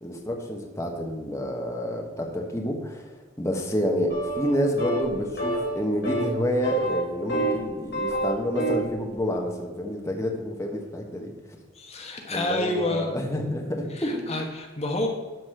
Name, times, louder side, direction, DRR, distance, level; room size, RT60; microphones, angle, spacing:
voice 1, 0.0-11.6 12.3-14.3, equal, 15° left, 1 dB, 1.3 m, -29 dB
sound 1, 4.1-4.5 4.8-5.1 5.4-5.7 6.0-6.3 6.6-7.6 7.9-8.9, right 2 dB, 60° left, 3.2 m, -27 dB
voice 2, 11.7-13.1 13.9-15.1, left 2 dB, 35° left, 1 dB, 1.2 m, -29 dB
12.5 x 4.2 x 6.6 m, 1.4 s
head